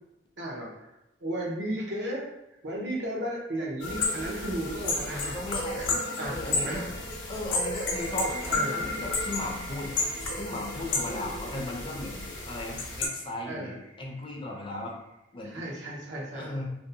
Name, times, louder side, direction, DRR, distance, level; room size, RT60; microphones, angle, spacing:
voice 1, 0.4-0.7 1.2-2.2 2.6-5.4 5.7-7.1 7.7-7.8 8.5-8.8 13.5-13.7 15.4-16.5, right 1 dB, 80° right, -3 dB, 0.7 m, -34 dB
sound 1, 3.8-13.1, left 3 dB, 90° left, 0.6 m, -32 dB
voice 2, 5.1-6.9 7.3-9.9 10.3-15.0 15.3-15.6 16.3-16.8, left 1 dB, 30° left, -1 dB, 0.4 m, -36 dB
sound 2, 7.6-15.2, right 2 dB, 45° right, 0.5 m, -46 dB
2.6 x 2.1 x 2.6 m, 0.89 s
head